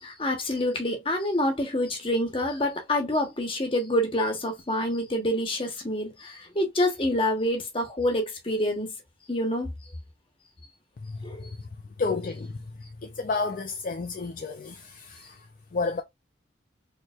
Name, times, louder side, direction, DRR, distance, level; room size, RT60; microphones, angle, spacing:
voice 1, 0.0-8.9 9.3-9.7 11.2-11.5, left 1 dB, 30° left, 1.0 m, -27 dB
voice 2, 12.0-12.6 13.0-15.4 15.7-16.0, left 4 dB, 45° left, 0.4 m, -31 dB
4.3 x 3.1 x 2.3 m
head